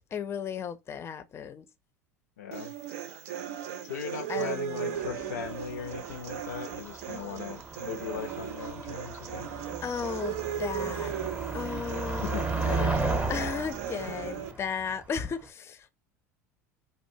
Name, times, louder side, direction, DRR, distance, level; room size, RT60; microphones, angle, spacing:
voice 1, 0.1-1.7 4.3-5.3 9.8-11.1 11.5-12.4 12.7-16.1, left 7 dB, 30° left, 0.4 m, -35 dB
voice 2, 2.4-2.7 3.8-9.5 12.2-13.6, left 7 dB, 90° left, 0.5 m, -39 dB
sound 1, 2.5-14.5, right 10 dB, 75° right, 0.4 m, -37 dB
Motor vehicle (road), 5.1-15.5, right 3 dB, 15° right, 0.6 m, -35 dB
2.6 x 2.1 x 2.6 m
hypercardioid pair, 85°, 8 cm